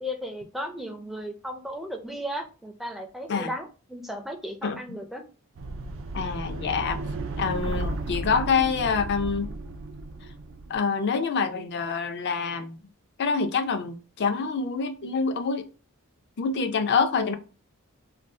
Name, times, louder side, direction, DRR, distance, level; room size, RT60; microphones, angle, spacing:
voice 1, 0.0-5.2, equal, ahead, 0.4 m, -35 dB
voice 2, 4.6-5.0 6.1-7.0 7.4-9.5 10.7-12.8 13.2-15.6 16.4-17.3, left 5 dB, 55° left, 0.4 m, -26 dB
sound 1, 5.6-10.8, right 2 dB, 65° right, 0.4 m, -34 dB
2.6 x 2.3 x 3.5 m
head